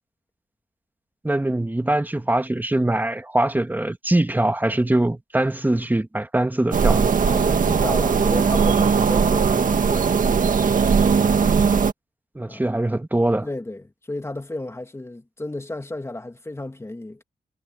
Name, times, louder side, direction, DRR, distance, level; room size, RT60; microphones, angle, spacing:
voice 1, 1.2-7.1 12.3-13.5, right 1 dB, 10° right, 1.5 m, -22 dB
sound 1, 6.7-11.9, right 6 dB, 65° right, 1.8 m, -19 dB
voice 2, 7.3-10.1 12.5-12.7 13.4-17.2, left 2 dB, 20° left, 2.2 m, -32 dB
wide cardioid pair, 100°, 15 cm